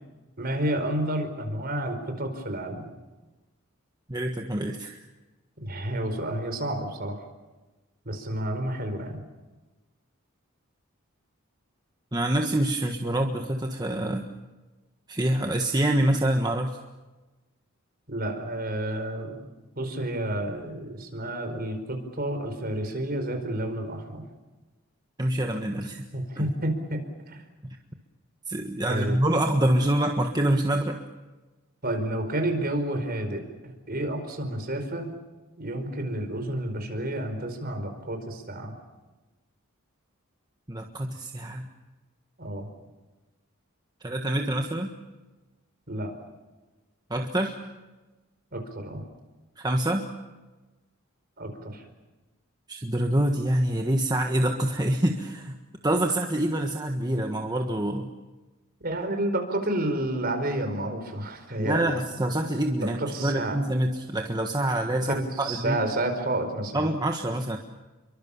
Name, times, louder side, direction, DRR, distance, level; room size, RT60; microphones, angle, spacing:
voice 1, 0.4-2.9 5.6-7.2 8.0-9.2 18.1-19.5 19.7-24.2 26.1-27.4 28.9-29.2 31.8-35.1 35.6-38.7 42.4-42.7 45.9-46.1 48.5-49.0 51.4-51.8 58.8-62.2 62.8-63.6 64.9-66.9, right 1 dB, 45° right, 5 dB, 4.9 m, -30 dB
voice 2, 4.1-5.0 12.1-14.3 15.1-16.8 25.2-26.1 26.4-26.5 27.6-27.8 28.5-31.0 40.7-41.7 44.0-44.9 47.1-47.5 49.6-50.1 52.7-55.6 55.8-58.1 61.6-65.8 66.7-67.6, right 1 dB, 20° right, 3 dB, 1.4 m, -26 dB
29.0 x 23.5 x 7.2 m, 1.2 s
head